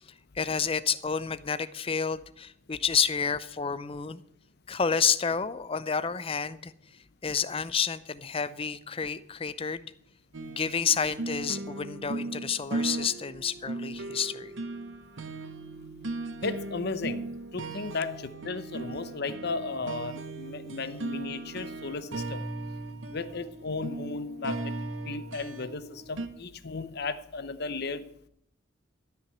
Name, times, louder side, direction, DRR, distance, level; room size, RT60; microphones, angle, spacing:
voice 1, 0.3-4.2 4.7-6.7 7.2-9.9 10.6-14.5, left 6 dB, 30° left, 15 dB, 0.5 m, -29 dB
sound 1, 10.3-26.3, right 2 dB, 80° right, 1.0 m, -37 dB
voice 2, 16.4-22.5 23.1-24.7 25.0-28.1, left 4 dB, 55° left, 13 dB, 0.8 m, -35 dB
13.0 x 5.9 x 8.0 m, 0.72 s
head